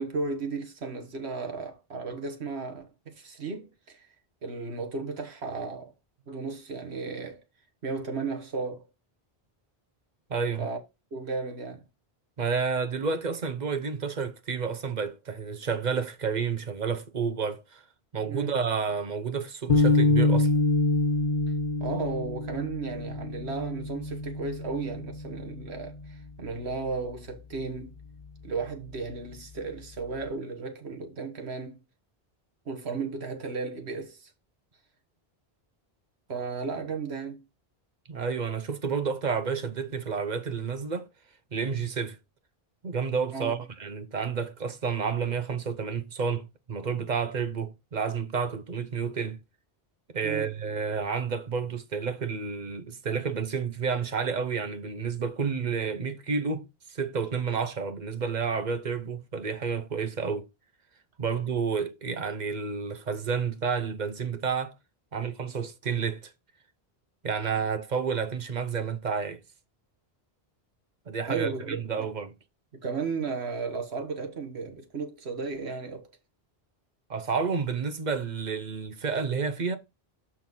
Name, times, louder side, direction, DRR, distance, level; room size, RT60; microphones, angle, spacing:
voice 1, 0.0-4.1 4.4-5.9 6.3-7.4 7.8-8.9 10.6-10.8 11.1-11.8 18.2-18.5 21.8-28.0 28.4-31.8 32.6-34.3 36.3-37.4 43.3-43.5 50.2-50.5 71.3-72.1 72.8-76.1, right 4 dB, 85° right, 1.6 m, -34 dB
voice 2, 10.3-10.7 12.4-17.8 18.1-20.5 38.1-41.1 41.5-42.2 42.8-49.4 50.1-60.4 61.2-64.7 65.1-66.3 67.2-69.4 71.1-72.3 77.1-79.8, right 5 dB, 50° right, 0.8 m, -30 dB
sound 1, 19.7-26.1, left 2 dB, 50° left, 1.4 m, -26 dB
6.1 x 4.4 x 5.4 m
omnidirectional pair, 1.1 m